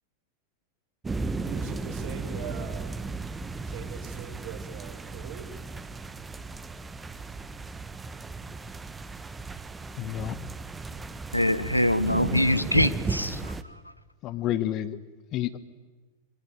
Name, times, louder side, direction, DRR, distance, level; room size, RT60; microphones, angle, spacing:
sound 1, 1.0-13.6, right 3 dB, 15° right, 1.2 m, -35 dB
voice 1, 1.4-3.0 3.6-5.5, right 7 dB, 50° right, 3 dB, 5.2 m, -41 dB
voice 2, 10.0-10.4 14.2-15.0 15.3-15.6, left 12 dB, 35° left, 13 dB, 1.2 m, -29 dB
voice 3, 11.3-13.8, left 1 dB, 90° left, 13 dB, 1.0 m, -24 dB
27.0 x 23.0 x 9.4 m, 1.3 s
figure-of-eight pair, 90°, 0 cm